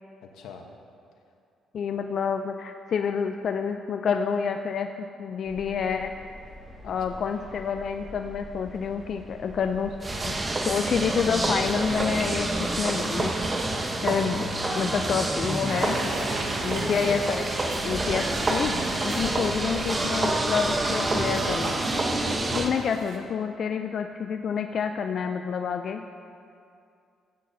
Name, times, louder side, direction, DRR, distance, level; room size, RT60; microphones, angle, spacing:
voice 1, 0.3-0.7 6.8-7.2 19.1-19.5 22.2-22.6, left 6 dB, 90° left, 3 dB, 0.9 m, -45 dB
voice 2, 1.7-4.9 5.2-6.1 6.8-10.0 10.3-13.3 14.0-14.5 14.8-16.1 16.6-17.4 17.8-18.7 19.0-21.8 22.5-26.0, left 6 dB, 60° left, 6 dB, 0.3 m, -28 dB
sound 1, 5.4-12.9, equal, 10° left, 1.6 m, -45 dB
sound 2, 10.0-22.7, right 2 dB, 25° right, 0.9 m, -27 dB
sound 3, 15.7-23.2, right 2 dB, 65° right, 1.1 m, -38 dB
13.0 x 8.5 x 2.7 m, 2.5 s
cardioid pair, 90°, 0 cm